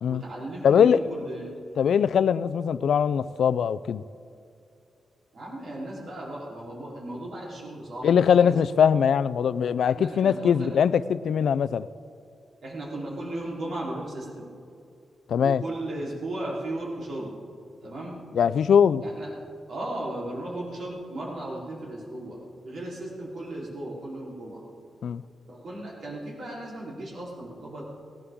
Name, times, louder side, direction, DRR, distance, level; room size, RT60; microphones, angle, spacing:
voice 1, 0.1-1.5 5.3-8.6 10.0-10.7 12.6-14.5 15.4-17.3 17.8-18.2 19.0-19.4 19.7-24.6 25.5-27.8, right 1 dB, 60° right, 3.8 m, -36 dB
voice 2, 0.6-1.0 1.8-4.0 8.0-11.9 15.3-15.6 18.3-19.0 25.0-25.2, left 7 dB, 75° left, 0.4 m, -21 dB
18.5 x 18.0 x 3.7 m
wide cardioid pair, 125°, 0 cm